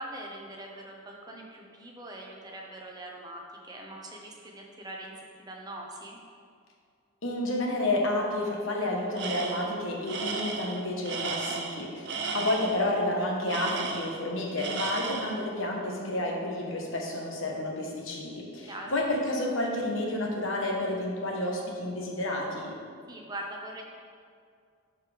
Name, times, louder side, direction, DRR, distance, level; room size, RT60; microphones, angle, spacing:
voice 1, 0.0-6.2 12.1-12.5 18.7-19.0 23.1-23.8, right 1 dB, 20° right, 0 dB, 0.8 m, -42 dB
voice 2, 7.2-12.1 12.3-22.7, left 1 dB, 60° left, -1 dB, 1.2 m, -30 dB
Tools, 9.2-9.7 10.1-12.8 13.5-14.3 14.6-15.4, right 4 dB, 50° right, 0.6 m, -34 dB
10.5 x 4.7 x 3.4 m, 2.2 s
head